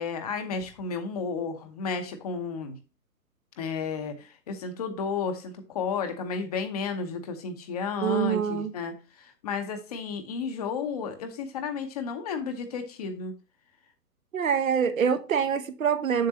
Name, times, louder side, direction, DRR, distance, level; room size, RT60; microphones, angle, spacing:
voice 1, 0.0-2.8 3.6-13.3, left 5 dB, 25° left, 0.9 m, -32 dB
voice 2, 8.0-8.7 14.3-16.3, right 7 dB, 55° right, 1.0 m, -25 dB
7.5 x 7.0 x 2.9 m
figure-of-eight pair, 130°, 48 cm